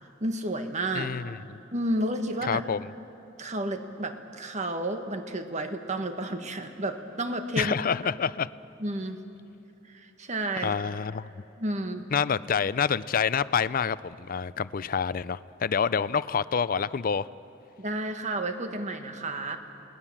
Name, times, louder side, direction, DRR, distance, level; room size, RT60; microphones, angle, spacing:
voice 1, 0.2-1.1 1.7-2.6 3.4-7.7 8.8-9.2 9.9-10.7 11.6-12.0 17.8-19.6, right 1 dB, 40° right, 6 dB, 1.5 m, -31 dB
voice 2, 0.9-1.6 2.4-2.9 7.6-8.5 10.6-11.3 12.1-17.3, left 6 dB, 45° left, 17 dB, 0.5 m, -27 dB
29.0 x 19.0 x 7.3 m, 2.9 s
head